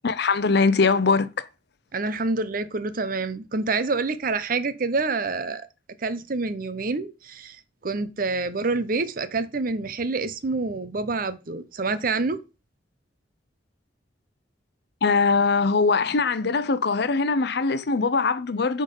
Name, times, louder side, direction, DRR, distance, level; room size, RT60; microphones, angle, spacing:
voice 1, 0.0-1.5 15.0-18.8, left 4 dB, 65° left, 0.6 m, -22 dB
voice 2, 1.9-5.7 6.0-12.4, right 3 dB, 50° right, 0.7 m, -27 dB
8.8 x 3.9 x 5.5 m
head